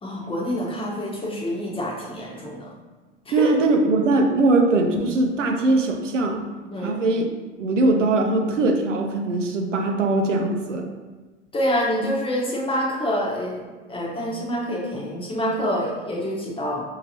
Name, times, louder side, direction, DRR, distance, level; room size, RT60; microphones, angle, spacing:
voice 1, 0.0-2.7 3.3-3.5 6.7-7.0 11.5-13.6 13.9-16.8, equal, 15° left, -3 dB, 0.9 m, -26 dB
voice 2, 3.3-6.4 6.8-7.3 7.6-10.8, right 2 dB, 80° right, 3 dB, 0.6 m, -21 dB
5.4 x 2.8 x 2.8 m, 1.3 s
figure-of-eight pair, 85°, 36 cm